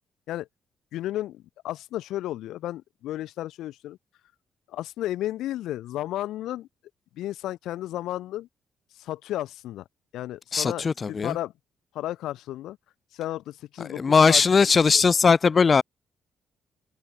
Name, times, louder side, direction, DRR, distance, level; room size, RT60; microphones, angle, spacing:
voice 1, 0.9-4.0 4.7-6.7 7.2-8.5 8.9-9.8 10.1-11.5 11.9-12.8 13.1-14.4, left 14 dB, 85° left, 0.8 m, -33 dB
voice 2, 10.5-11.4 14.0-15.8, left 5 dB, 35° left, 1.8 m, -19 dB
open air
cardioid pair, 120°, 0 cm